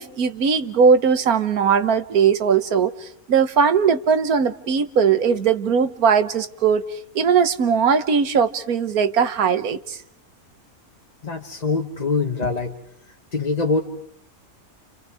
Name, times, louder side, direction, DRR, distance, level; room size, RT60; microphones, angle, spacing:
voice 1, 0.0-10.0, right 6 dB, 90° right, 1.7 m, -19 dB
voice 2, 11.2-12.7 13.3-13.8, left 4 dB, 30° left, 1.5 m, -23 dB
30.0 x 30.0 x 4.9 m
omnidirectional pair, 1.5 m